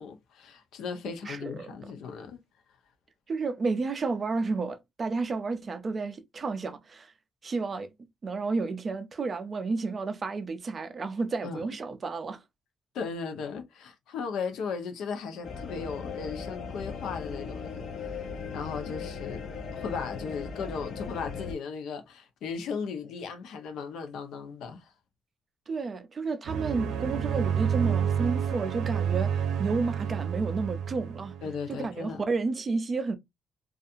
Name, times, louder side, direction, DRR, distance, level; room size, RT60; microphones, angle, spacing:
voice 1, 0.0-2.4 11.4-11.6 12.9-17.9 18.5-19.5 19.7-24.9 31.4-32.2, left 5 dB, 90° left, 0.6 m, -36 dB
voice 2, 1.3-1.7 3.3-7.1 7.4-7.9 8.2-12.4 25.7-31.3 31.7-33.2, right 4 dB, 25° right, 0.4 m, -31 dB
sound 1, 15.4-21.5, left 5 dB, 45° left, 0.6 m, -38 dB
sound 2, 26.5-31.6, right 8 dB, 70° right, 0.6 m, -29 dB
2.7 x 2.4 x 2.3 m
cardioid pair, 180°, 0 cm